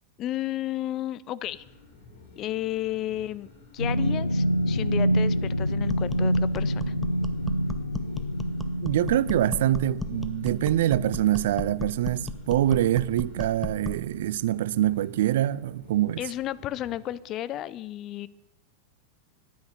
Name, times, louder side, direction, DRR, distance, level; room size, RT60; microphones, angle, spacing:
voice 1, 0.2-1.6 2.4-6.9 16.2-18.3, left 13 dB, 35° left, 0.5 m, -33 dB
sound 1, 1.4-17.0, left 3 dB, 55° left, 3.7 m, -52 dB
sound 2, 3.8-14.5 14.8-15.1 15.5-15.6, equal, 85° left, 0.6 m, -28 dB
sound 3, 5.9-14.1, left 2 dB, 10° left, 0.8 m, -37 dB
voice 2, 8.8-16.2, right 13 dB, 55° right, 0.4 m, -25 dB
10.5 x 9.2 x 6.8 m
figure-of-eight pair, 90°, 0 cm